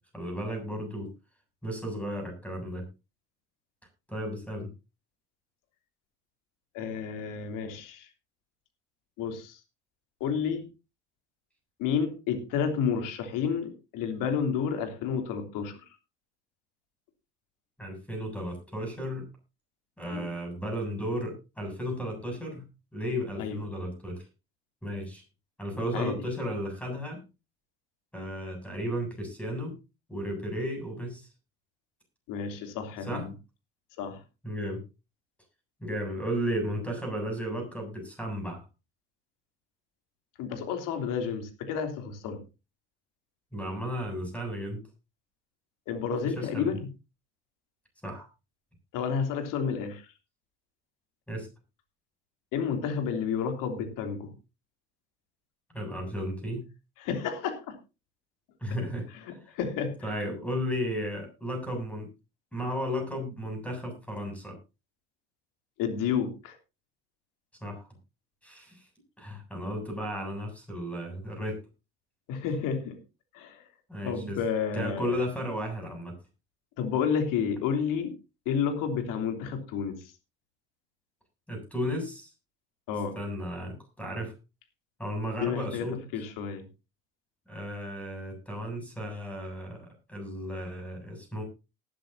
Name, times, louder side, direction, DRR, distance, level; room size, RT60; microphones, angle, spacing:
voice 1, 0.1-1.1 1.6-2.9 4.1-4.7 17.8-19.3 20.0-24.2 24.8-25.2 25.6-27.2 28.1-29.8 30.1-31.3 33.1-33.3 34.4-34.8 35.8-38.6 43.5-44.8 46.2-46.8 48.0-48.3 51.3-51.5 55.7-56.7 58.6-59.4 60.0-62.1 62.5-64.6 67.6-67.9 68.4-68.8 69.2-71.6 73.9-74.4 74.7-76.1 81.5-82.3 83.2-84.3 85.0-86.1 87.5-91.4, equal, 5° left, 3 dB, 7.5 m, -34 dB
voice 2, 6.7-8.1 9.2-9.6 10.2-10.7 11.8-15.7 20.1-20.3 23.4-23.6 25.9-26.1 32.3-33.3 34.0-34.2 40.4-42.4 45.9-46.9 48.9-50.0 52.5-54.3 57.0-57.7 59.5-60.1 65.8-66.6 72.3-73.0 73.3-73.6 74.0-75.2 76.8-78.1 78.4-79.9 82.9-83.1 85.3-85.9 86.1-86.6, left 7 dB, 65° left, 6 dB, 3.2 m, -30 dB
19.5 x 10.0 x 2.8 m, 0.28 s
hypercardioid pair, 60°, 34 cm